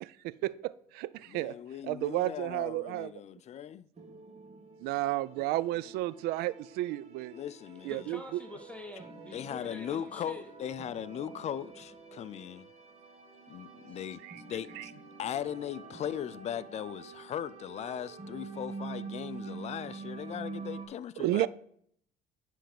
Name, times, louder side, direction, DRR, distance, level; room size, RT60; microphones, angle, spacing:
voice 1, 0.0-1.5 1.8-3.1 4.8-7.3 7.8-8.4 14.2-14.4 14.8-14.9 21.2-21.5, right 16 dB, 70° right, 0.4 m, -32 dB
voice 2, 1.3-3.9 7.3-8.1 9.3-12.7 13.5-14.2 14.5-14.9 15.2-21.5, left 9 dB, 40° left, 0.4 m, -38 dB
sound 1, 4.0-20.9, right 4 dB, 40° right, 1.9 m, -46 dB
voice 3, 7.9-10.5 13.9-14.1, left 1 dB, 5° left, 1.1 m, -47 dB
9.8 x 3.5 x 5.9 m
supercardioid pair, 85°, 17 cm